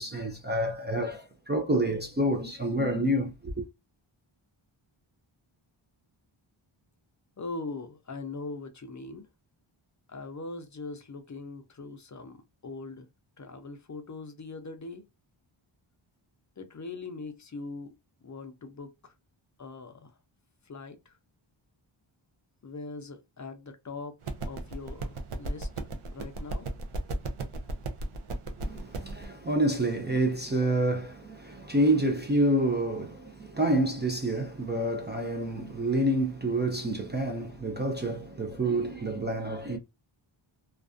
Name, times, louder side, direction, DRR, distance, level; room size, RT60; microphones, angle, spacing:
voice 1, 0.0-3.6 28.6-39.8, right 1 dB, 25° right, 0.4 m, -28 dB
voice 2, 7.4-9.3 10.1-13.1 13.4-15.0 16.6-19.1 19.6-20.1 20.7-21.2 22.6-24.2 24.5-25.7 26.1-26.7, left 3 dB, 40° left, 0.5 m, -41 dB
sound 1, 24.2-29.3, right 2 dB, 80° right, 0.6 m, -35 dB
2.4 x 2.2 x 2.4 m
wide cardioid pair, 90°, 49 cm